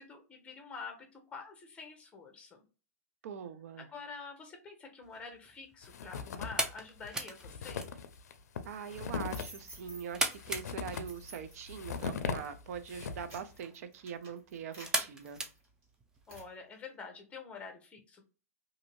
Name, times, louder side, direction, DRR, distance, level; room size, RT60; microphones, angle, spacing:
voice 1, 0.0-2.6 3.8-7.9 16.3-18.3, left 4 dB, 15° left, 4 dB, 0.8 m, -47 dB
voice 2, 3.2-3.9 8.6-15.4, right 7 dB, 65° right, 11 dB, 0.5 m, -43 dB
sound 1, 5.0-16.4, right 2 dB, 10° right, 0.4 m, -41 dB
sound 2, 5.8-6.7 7.0-7.1 7.3-13.4, left 6 dB, 85° left, 0.5 m, -39 dB
sound 3, 9.2-10.4 10.9-11.7 12.3-12.5 13.0-15.8 16.3-16.5, right 2 dB, 25° right, 1.4 m, -53 dB
2.6 x 2.6 x 2.9 m, 0.34 s
hypercardioid pair, 140°, 9 cm